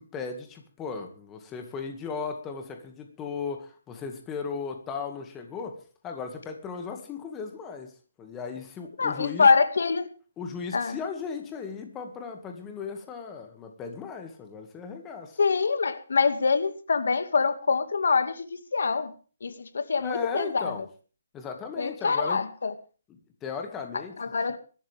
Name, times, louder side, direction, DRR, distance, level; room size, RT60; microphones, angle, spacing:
voice 1, 0.0-7.9 8.2-9.5 10.4-15.4 20.0-20.8 21.3-22.4 23.1-24.2, left 5 dB, 10° left, 2.1 m, -36 dB
voice 2, 9.0-10.1 10.7-11.0 15.4-19.1 19.4-20.7 21.8-22.7 24.2-24.6, left 5 dB, 75° left, 2.2 m, -25 dB
23.0 x 13.0 x 3.6 m
hypercardioid pair, 170°, 0 cm